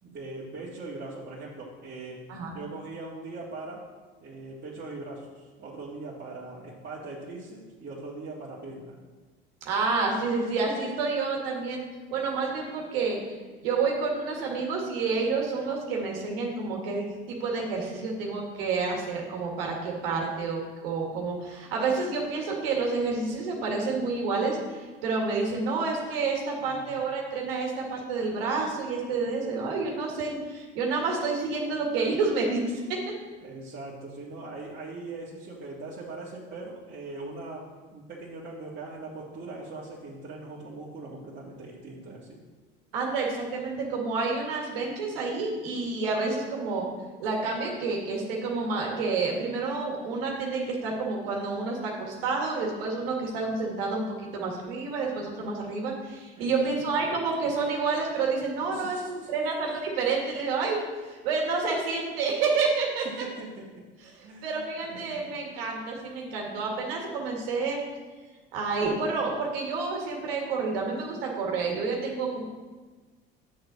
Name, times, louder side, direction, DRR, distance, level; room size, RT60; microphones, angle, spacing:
voice 1, 0.0-2.2 2.5-3.9 4.2-9.0 26.6-27.0 33.4-42.4 56.4-57.2 58.7-59.5 63.0-63.8 64.2-65.3, right 3 dB, 35° right, -7 dB, 1.9 m, -41 dB
voice 2, 9.6-11.8 12.1-33.0 42.9-46.8 47.2-63.3 64.4-67.8 68.5-72.5, right 4 dB, 75° right, 0 dB, 2.0 m, -29 dB
9.2 x 6.7 x 4.1 m, 1.3 s
hypercardioid pair, 65°, 29 cm